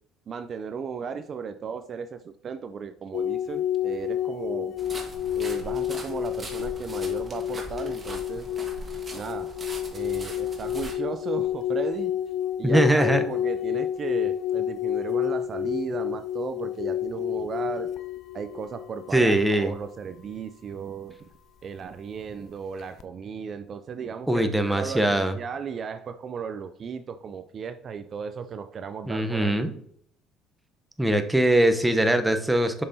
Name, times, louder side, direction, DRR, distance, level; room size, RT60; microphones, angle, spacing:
voice 1, 0.3-4.7 5.3-8.5 9.1-9.5 9.9-12.2 12.6-17.9 18.3-21.3 21.6-29.6, right 6 dB, 45° right, 10 dB, 0.4 m, -35 dB
sound 1, 3.1-19.5 22.8-23.0, left 11 dB, 60° left, 0.3 m, -29 dB
sound 2, 4.8-10.9, right 2 dB, 30° right, 1.4 m, -41 dB
voice 2, 12.6-13.2 19.1-19.7 24.3-25.4 29.1-29.7 31.0-32.8, right 1 dB, 5° right, 7 dB, 0.8 m, -22 dB
6.6 x 5.5 x 2.7 m, 0.66 s
supercardioid pair, 85°, 0 cm